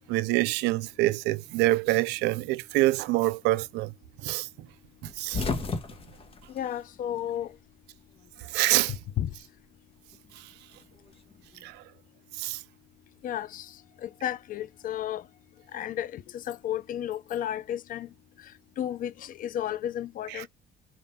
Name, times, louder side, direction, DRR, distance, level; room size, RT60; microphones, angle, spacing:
voice 1, 0.1-3.9 4.2-4.5 5.2-5.4 8.4-9.0 11.6-11.8 12.4-12.6, right 19 dB, 90° right, 0.4 m, -26 dB
sound 1, 5.0-7.6 7.8-8.9 10.1-11.6, left 4 dB, 35° left, 1.5 m, -35 dB
voice 2, 6.5-7.5 8.9-9.3 13.2-13.7 14.0-15.2 15.7-18.1 18.8-20.5, left 11 dB, 55° left, 0.5 m, -33 dB
4.7 x 3.5 x 2.7 m
cardioid pair, 110°, 17 cm